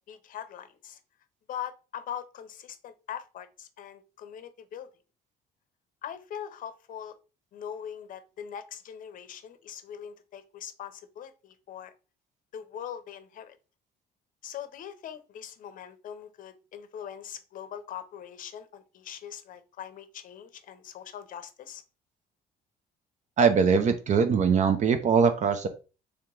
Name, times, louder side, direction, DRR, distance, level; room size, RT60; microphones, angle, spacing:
voice 1, 0.1-1.0 1.5-4.9 6.0-7.1 7.5-11.9 12.5-13.6 14.4-21.8, left 9 dB, 55° left, 11 dB, 0.6 m, -41 dB
voice 2, 23.4-25.7, right 6 dB, 45° right, 8 dB, 0.5 m, -22 dB
3.3 x 2.9 x 3.7 m, 0.33 s
cardioid pair, 110°, 17 cm